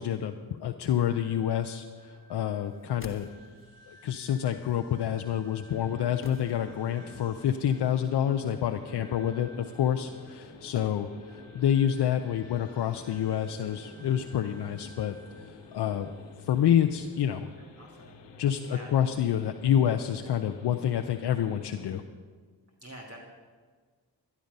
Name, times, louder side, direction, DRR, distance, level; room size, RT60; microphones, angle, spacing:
voice 1, 0.0-3.3 3.9-16.1 16.4-17.5 18.4-22.0, left 9 dB, 70° left, 6 dB, 0.7 m, -28 dB
sound 1, 0.8-16.8, equal, 75° right, 3.3 m, -57 dB
sound 2, 2.6-3.8 6.2-7.1 7.4-7.5, left 3 dB, 30° left, 1.2 m, -48 dB
sound 3, 5.7-22.0, left 3 dB, 85° left, 1.4 m, -49 dB
voice 2, 17.6-18.2 18.6-18.9 22.8-23.2, right 1 dB, 35° right, -2 dB, 2.2 m, -47 dB
11.5 x 11.0 x 5.3 m, 1.5 s
supercardioid pair, 45°, 43 cm